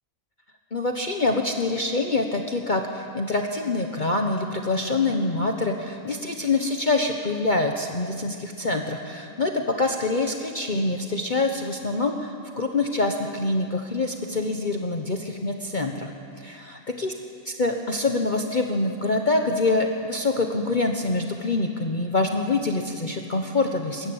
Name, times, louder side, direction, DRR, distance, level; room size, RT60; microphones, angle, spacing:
voice 1, 0.7-16.1 16.4-16.6 17.0-17.1 17.5-24.1, left 2 dB, 35° left, 3 dB, 1.2 m, -25 dB
21.5 x 15.0 x 8.7 m, 2.4 s
omnidirectional pair, 1.4 m